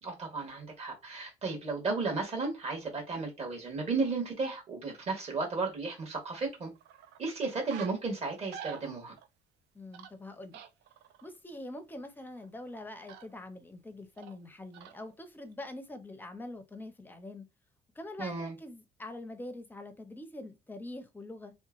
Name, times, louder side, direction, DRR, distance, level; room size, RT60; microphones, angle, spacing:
voice 1, 0.0-6.7 7.2-9.1 18.2-18.5, right 3 dB, 40° right, 1.3 m, -34 dB
sound 1, 6.2-6.3 6.7-7.2 7.5-8.0 8.3-9.3 9.9-10.1 10.5-11.4 12.4-12.7 13.1-13.3 14.2-14.4 14.7-15.1 15.5-15.6, right 10 dB, 80° right, 0.4 m, -47 dB
voice 2, 9.7-10.6 11.2-17.5 18.0-21.5, left 1 dB, 10° left, 0.5 m, -44 dB
2.9 x 2.1 x 2.3 m
cardioid pair, 110°, 17 cm